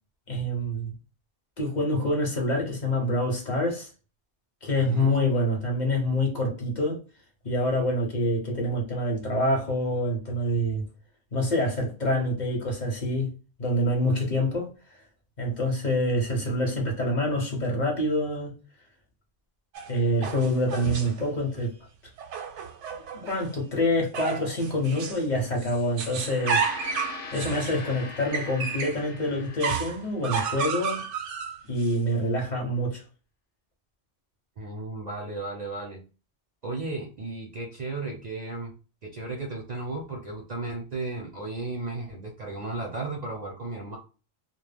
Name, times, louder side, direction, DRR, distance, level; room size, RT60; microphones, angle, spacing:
voice 1, 0.3-0.9 1.6-3.9 4.6-7.0 7.4-10.8 11.3-13.3 13.6-14.7 15.4-18.5 19.9-21.7 23.1-26.6 27.3-31.0 31.7-33.0, left 1 dB, 45° left, 0.8 m, -26 dB
voice 2, 4.8-5.3 34.6-36.0 36.6-38.7 39.0-44.0, right 3 dB, 50° right, 0.5 m, -34 dB
sound 1, 19.7-21.3 22.2-23.5 24.1-25.3 25.6-29.0 29.6-31.9, right 6 dB, 85° right, 0.9 m, -32 dB
Gong, 26.1-30.7, left 4 dB, 90° left, 0.9 m, -42 dB
2.2 x 2.1 x 3.2 m
omnidirectional pair, 1.2 m